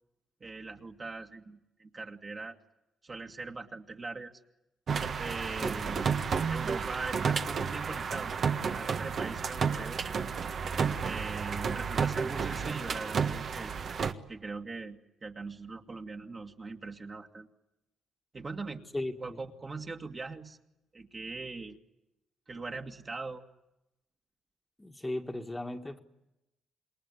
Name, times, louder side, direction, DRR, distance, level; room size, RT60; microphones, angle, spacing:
voice 1, 0.4-2.6 3.0-4.3 5.2-6.1 6.5-10.1 11.0-13.7 14.3-17.5 18.3-18.8 19.2-20.6 20.9-21.8 22.5-23.4, right 3 dB, 30° right, 3 dB, 2.2 m, -41 dB
sound 1, 4.9-14.1, right 6 dB, 55° right, 1.6 m, -31 dB
voice 2, 18.9-19.4 24.8-26.0, left 1 dB, 15° left, 4 dB, 1.8 m, -36 dB
27.5 x 21.5 x 9.7 m, 0.91 s
cardioid pair, 90°, 0 cm